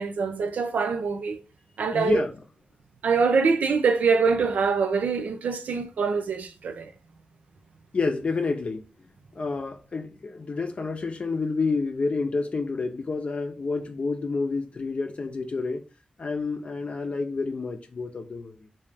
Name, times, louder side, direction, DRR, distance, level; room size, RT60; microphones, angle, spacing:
voice 1, 0.0-1.4 1.8-2.2 3.0-6.9, right 5 dB, 90° right, 0.5 m, -24 dB
voice 2, 1.9-2.3 7.9-8.8 9.4-15.8 16.2-18.5, left 3 dB, 55° left, 0.6 m, -29 dB
3.2 x 2.7 x 3.4 m
cardioid pair, 55°, 3 cm